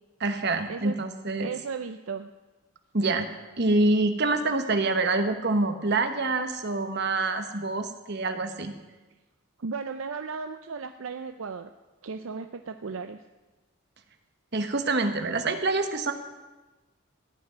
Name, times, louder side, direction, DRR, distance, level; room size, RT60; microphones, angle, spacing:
voice 1, 0.2-1.5 2.9-3.3 3.6-8.7 14.5-16.1, right 2 dB, 50° right, 7 dB, 1.2 m, -26 dB
voice 2, 1.4-2.3 9.6-11.7 12.0-13.2, right 5 dB, 70° right, 8 dB, 0.5 m, -35 dB
15.5 x 6.0 x 9.7 m, 1.2 s
head